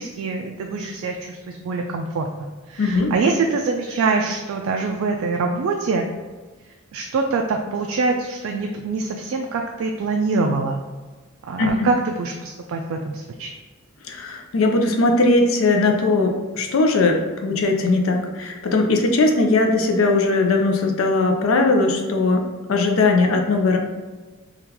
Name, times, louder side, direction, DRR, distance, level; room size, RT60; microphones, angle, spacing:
voice 1, 0.0-6.0 6.9-10.8 11.4-13.5, right 4 dB, 65° right, 2 dB, 0.3 m, -24 dB
voice 2, 2.8-3.1 11.6-11.9 14.0-23.8, left 3 dB, 65° left, 3 dB, 0.5 m, -19 dB
3.6 x 2.3 x 2.9 m, 1.3 s
head